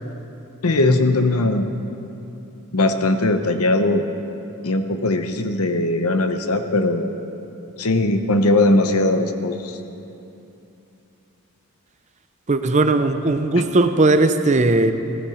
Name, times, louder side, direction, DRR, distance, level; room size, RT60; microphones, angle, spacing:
voice 1, 0.6-1.6 2.7-4.0 4.6-7.1 7.8-9.8, left 2 dB, 75° left, 8 dB, 0.9 m, -19 dB
voice 2, 12.5-14.9, right 2 dB, 30° right, 9 dB, 0.6 m, -17 dB
15.0 x 14.5 x 5.0 m, 2.8 s
head